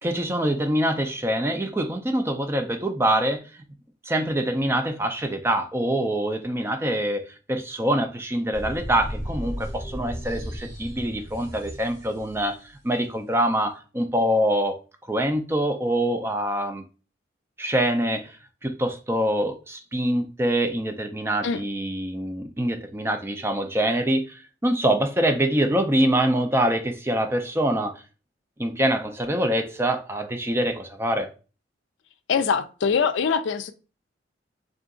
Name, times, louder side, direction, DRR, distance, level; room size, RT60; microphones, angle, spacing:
voice 1, 0.0-3.4 4.0-14.8 15.1-16.8 17.6-18.4 18.6-28.0 28.6-31.3, right 1 dB, 15° right, 0.4 m, -25 dB
sound 1, 8.5-12.4, equal, 90° right, 2.0 m, -35 dB
voice 2, 32.3-33.7, left 6 dB, 75° left, 0.4 m, -23 dB
3.7 x 2.4 x 3.6 m
head